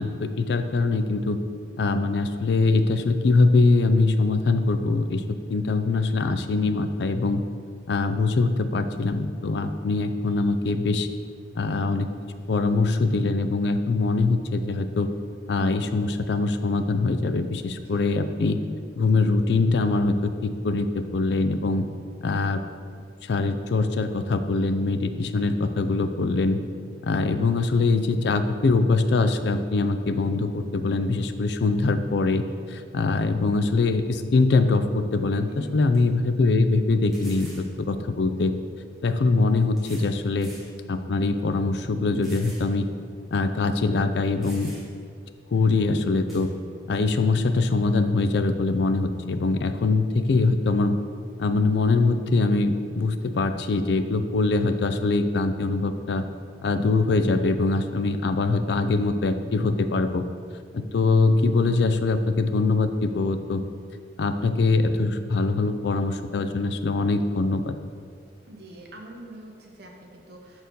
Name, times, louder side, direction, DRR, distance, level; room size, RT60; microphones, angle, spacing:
voice 1, 0.0-1.4 1.8-5.2 5.5-7.4 7.9-11.1 11.5-12.1 12.5-15.1 15.5-18.6 18.9-21.9 22.2-22.6 23.2-26.6 27.0-38.5 39.0-40.5 40.9-42.9 43.3-44.7 45.5-46.5 46.9-51.0 51.4-56.2 56.6-60.2 60.7-63.6 64.2-67.7, left 3 dB, 65° left, 9 dB, 0.4 m, -23 dB
sound 1, 35.3-35.4 35.9-36.0 37.1-37.7 38.8-38.9 39.8-40.1 40.4-40.7 41.2-41.3 42.2-42.7 43.0-43.1 44.0-44.1 44.4-45.0 46.3-46.5, right 1 dB, ahead, 1.5 m, -46 dB
voice 2, 35.5-35.9 68.5-70.6, right 1 dB, 55° right, 1 dB, 0.9 m, -44 dB
6.1 x 4.4 x 5.3 m, 2.1 s
head